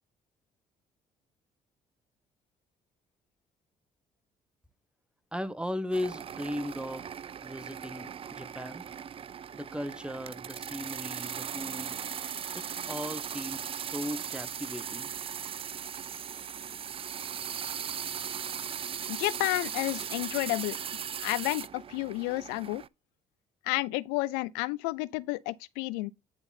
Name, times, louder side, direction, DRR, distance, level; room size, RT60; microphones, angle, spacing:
voice 1, 5.3-7.1 7.4-8.8 9.5-12.0 12.5-15.1, left 1 dB, 5° right, 1.1 m, -37 dB
sound 1, 5.9-22.9, right 8 dB, 35° right, 0.4 m, -38 dB
voice 2, 19.1-20.8 21.2-22.8 23.6-26.1, left 20 dB, 90° left, 0.4 m, -31 dB
9.8 x 3.8 x 4.1 m
supercardioid pair, 65°, 16 cm